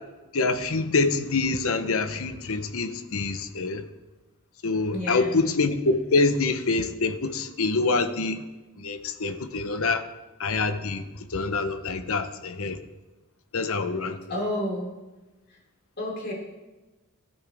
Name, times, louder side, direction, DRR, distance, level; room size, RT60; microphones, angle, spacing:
voice 1, 0.3-3.8 4.6-8.4 8.8-10.0 10.4-11.0 11.3-12.8 13.5-14.2, left 3 dB, 65° left, 0.9 m, -26 dB
voice 2, 4.9-5.4 14.3-14.9 16.0-16.3, left 1 dB, 45° left, 4.3 m, -30 dB
17.5 x 12.5 x 3.6 m
head